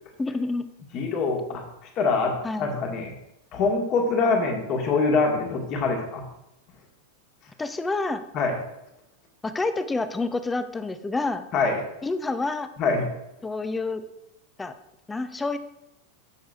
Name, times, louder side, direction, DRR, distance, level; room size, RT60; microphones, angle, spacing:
voice 1, 0.2-0.7 2.4-2.8 7.6-8.2 9.4-11.5 12.0-12.7 13.4-14.0 14.6-14.7 15.1-15.6, left 3 dB, 10° left, 11 dB, 0.6 m, -28 dB
voice 2, 0.9-1.6 1.9-3.1 3.5-6.2 8.3-8.6 11.5-11.8 12.8-13.0, left 4 dB, 35° left, 2 dB, 1.7 m, -24 dB
15.5 x 6.3 x 2.5 m, 0.87 s
figure-of-eight pair, 90°, 0 cm